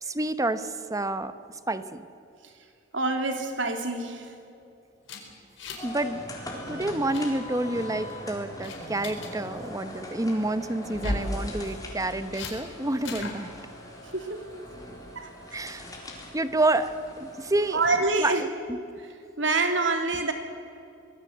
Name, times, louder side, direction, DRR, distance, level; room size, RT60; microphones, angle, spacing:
voice 1, 0.0-1.3 1.7-2.1 5.8-6.2 6.7-13.5 15.5-15.9 16.3-16.9 17.2-17.8 18.2-18.8, right 2 dB, 15° right, 12 dB, 1.0 m, -28 dB
voice 2, 2.9-4.3 14.1-14.4 15.1-15.3 17.7-18.5 19.4-20.3, right 3 dB, 70° right, 5 dB, 3.0 m, -26 dB
sound 1, 5.0-6.0 6.2-6.5 6.8-7.2 7.8-8.1 8.6-9.3 10.8-11.3 12.3-12.5 13.0-13.4, left 2 dB, 75° left, 4.5 m, -34 dB
sound 2, 5.8-18.0, left 1 dB, 20° left, 4.1 m, -41 dB
25.0 x 19.5 x 8.0 m, 2.7 s
head